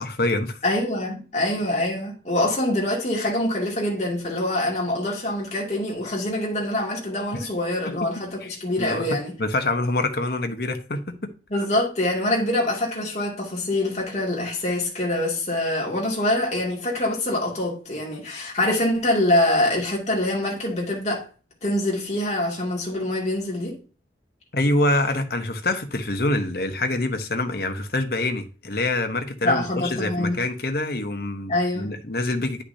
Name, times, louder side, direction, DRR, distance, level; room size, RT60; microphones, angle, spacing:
voice 1, 0.0-0.6 7.8-8.0 8.4-8.5 8.8-11.3 24.5-32.6, left 2 dB, 55° left, 1.0 m, -25 dB
voice 2, 0.6-9.3 11.5-21.2 21.6-23.8 29.4-30.4 31.5-31.9, left 1 dB, 40° left, 2.5 m, -25 dB
9.8 x 5.7 x 2.8 m
head